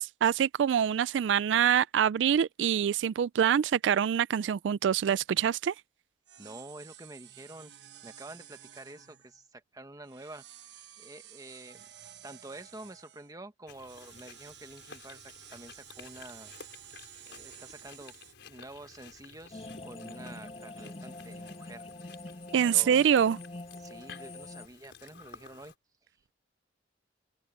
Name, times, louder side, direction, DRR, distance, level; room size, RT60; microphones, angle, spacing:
voice 1, 0.0-5.7 22.5-23.4, right 8 dB, 85° right, 0.3 m, -25 dB
sound 1, 5.5-5.7 6.3-9.4 10.0-13.3 13.9-18.3, right 11 dB, 70° right, 1.1 m, -52 dB
voice 2, 6.4-7.7 8.0-10.5 11.0-11.8 12.2-16.5 17.2-18.1 18.4-22.2 22.6-23.0 23.8-25.7, right 2 dB, 20° right, 1.4 m, -48 dB
Chewing mastication, 13.7-25.7, left 5 dB, 80° left, 4.8 m, -53 dB
sound 2, 19.5-24.7, left 2 dB, 35° left, 1.6 m, -45 dB
open air
head